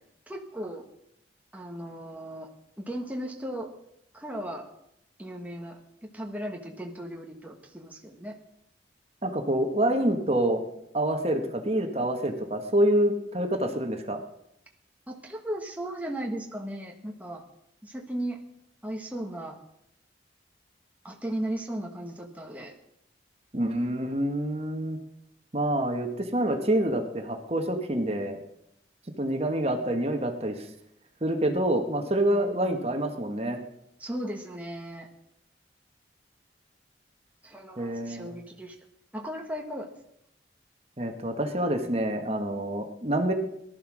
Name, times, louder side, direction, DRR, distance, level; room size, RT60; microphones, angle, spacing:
voice 1, 0.3-0.8 1.5-2.5 2.8-3.7 4.1-4.7 5.2-5.8 6.1-8.3 15.1-17.4 17.8-18.4 18.8-19.6 21.0-22.7 32.3-32.8 34.0-35.1 37.4-38.8 39.1-39.9, right 1 dB, 10° right, 0 dB, 1.5 m, -36 dB
voice 2, 9.2-10.6 10.9-14.2 23.5-25.0 25.5-28.4 29.2-30.7 31.2-33.6 37.8-38.3 41.0-43.3, right 1 dB, 35° right, 5 dB, 1.5 m, -27 dB
18.5 x 12.0 x 6.2 m, 0.78 s
head